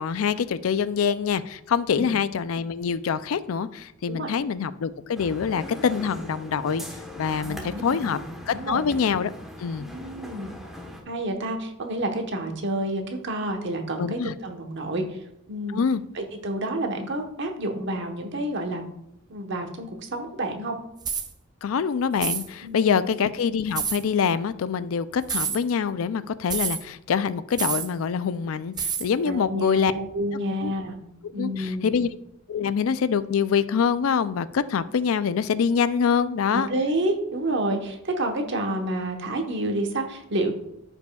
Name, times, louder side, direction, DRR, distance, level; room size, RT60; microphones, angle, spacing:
voice 1, 0.0-6.8 7.2-8.2 8.5-9.3 9.6-9.9 14.0-14.3 15.7-16.0 21.6-29.9 30.6-30.7 31.4-32.1 32.5-36.7, left 6 dB, 75° left, 15 dB, 0.4 m, -25 dB
sound 1, 5.1-11.0, equal, ahead, 1.1 m, -40 dB
voice 2, 7.3-8.2 8.5-8.9 9.8-10.5 11.1-15.2 15.5-15.8 16.1-18.8 19.3-20.8 22.6-22.9 29.2-31.0 31.3-31.9 36.5-40.5, right 1 dB, 55° right, 4 dB, 1.1 m, -29 dB
sound 2, 21.0-21.3 22.2-22.5 23.7-24.0 25.2-25.6 26.5-26.8 27.6-27.9 28.8-29.1, right 6 dB, 20° right, 0.5 m, -28 dB
14.5 x 5.4 x 2.3 m, 0.81 s
head